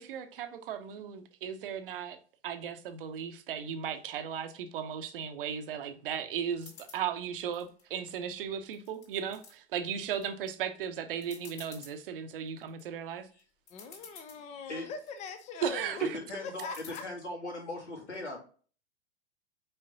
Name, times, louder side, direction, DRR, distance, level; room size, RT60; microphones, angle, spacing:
voice 1, 0.0-2.2 2.4-13.3 15.6-16.2, right 8 dB, 50° right, 0.9 m, -36 dB
sound 1, 6.6-7.0 7.5-8.3 8.7-9.5 10.0-10.5 10.8-10.9 11.2-11.9 12.5-12.8 13.4-13.5 13.7-14.4 14.9-15.4 16.6-17.0, left 6 dB, 45° left, 2.6 m, -51 dB
voice 2, 13.7-16.0 16.4-17.0, left 5 dB, 20° left, 0.7 m, -42 dB
voice 3, 16.0-18.4, left 2 dB, 75° left, 2.7 m, -39 dB
5.7 x 4.8 x 3.9 m
figure-of-eight pair, 100°, 35 cm